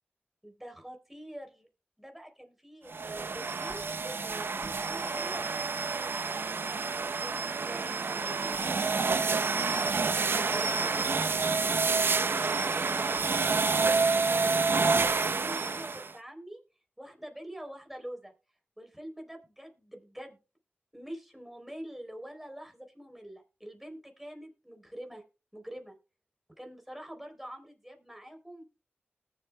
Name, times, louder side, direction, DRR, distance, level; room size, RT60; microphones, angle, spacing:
voice 1, 0.4-1.7 2.0-6.3 7.2-9.6 10.3-11.5 11.9-13.6 14.3-16.6 17.0-18.3 18.8-20.4 20.9-25.2 25.5-26.0 26.6-28.6, equal, 5° right, 3 dB, 3.7 m, -46 dB
sound 1, 2.9-16.1, right 4 dB, 65° right, 0.6 m, -28 dB
20.0 x 7.2 x 2.3 m, 0.32 s
wide cardioid pair, 60°, 4 cm